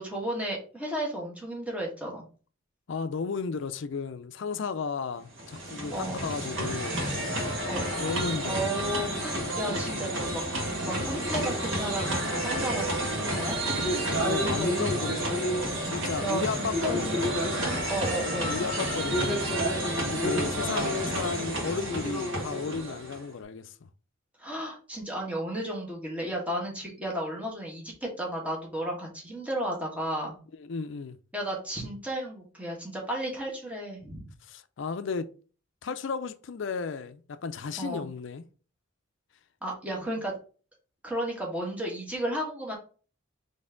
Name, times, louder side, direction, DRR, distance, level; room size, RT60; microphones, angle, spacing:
voice 1, 0.0-2.2 5.9-6.3 7.6-7.8 8.4-10.4 10.7-12.9 13.1-13.6 16.2-17.3 17.9-18.6 24.4-30.4 31.3-34.2 37.8-38.1 39.6-40.3 41.0-42.8, right 1 dB, 5° right, 1.3 m, -33 dB
voice 2, 2.9-7.0 8.0-8.6 14.2-15.3 15.8-17.4 18.5-19.5 20.1-23.7 30.6-31.2 34.5-35.3 35.8-38.5 40.0-40.1, left 5 dB, 65° left, 0.4 m, -34 dB
sound 1, 5.2-23.3, equal, 60° right, 1.8 m, -30 dB
4.2 x 3.3 x 3.8 m
head